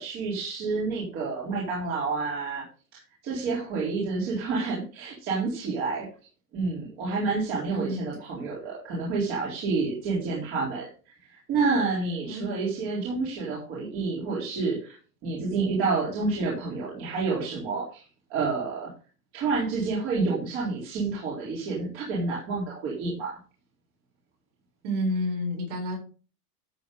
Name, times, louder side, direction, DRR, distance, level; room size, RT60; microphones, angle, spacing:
voice 1, 0.0-2.6 2.9-6.1 6.5-18.9 19.3-23.4, right 4 dB, 25° right, -6 dB, 3.8 m, -29 dB
voice 2, 7.7-8.1 12.2-12.7 24.8-26.0, equal, 45° right, 0 dB, 7.2 m, -30 dB
13.5 x 7.7 x 3.8 m, 0.37 s
supercardioid pair, 175°, 48 cm